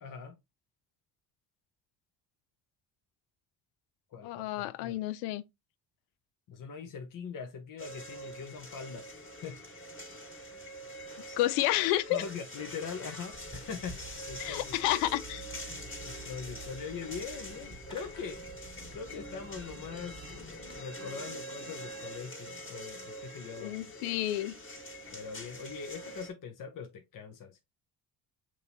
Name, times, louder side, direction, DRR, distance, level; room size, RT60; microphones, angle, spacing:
voice 1, 0.0-0.4 4.1-5.0 6.5-9.1 9.4-9.6 12.1-14.0 14.3-14.7 15.7-18.4 18.9-23.8 25.1-27.6, left 6 dB, 45° left, 0.9 m, -42 dB
voice 2, 4.2-5.4 11.4-12.2 14.4-15.5 23.6-24.5, left 15 dB, 90° left, 0.5 m, -30 dB
sound 1, 7.8-26.3, equal, 30° left, 1.9 m, -45 dB
Fireworks, 13.3-20.8, right 3 dB, 10° left, 1.4 m, -49 dB
6.3 x 2.9 x 2.8 m
supercardioid pair, 60°, 44 cm